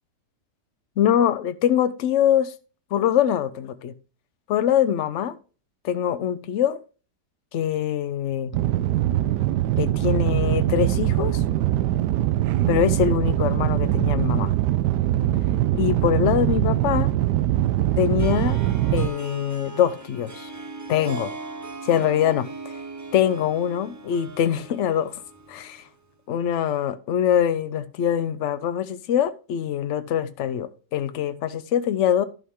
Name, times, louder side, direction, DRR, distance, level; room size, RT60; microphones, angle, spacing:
voice 1, 1.0-2.5 2.9-3.9 4.5-5.4 5.8-6.8 7.5-8.5 9.8-11.4 12.7-14.5 15.7-17.1 18.0-18.6 18.9-20.5 20.9-21.3 21.8-22.5 23.1-25.1 25.5-25.8 26.3-32.2, left 9 dB, 55° left, 0.9 m, -23 dB
sound 1, 8.5-19.1, right 13 dB, 85° right, 1.2 m, -22 dB
Harp, 18.2-25.9, right 3 dB, 25° right, 0.4 m, -39 dB
11.0 x 5.5 x 3.7 m
omnidirectional pair, 1.8 m